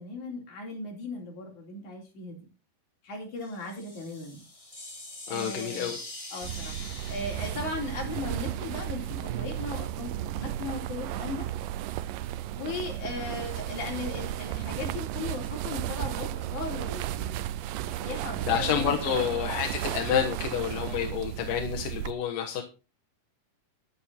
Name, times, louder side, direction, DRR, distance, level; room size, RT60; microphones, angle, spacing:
voice 1, 0.0-2.5 3.0-4.4 5.3-6.0 6.3-6.8 7.1-11.5 12.5-17.5 17.8-18.9, left 3 dB, 65° left, 0 dB, 5.3 m, -37 dB
sound 1, 3.4-9.3, left 1 dB, 10° left, 2.1 m, -44 dB
voice 2, 5.3-6.0 18.5-22.6, left 9 dB, 85° left, 2 dB, 3.0 m, -29 dB
sound 2, 6.4-22.1, right 13 dB, 85° right, 2.3 m, -34 dB
11.0 x 11.0 x 4.3 m, 0.31 s
omnidirectional pair, 3.8 m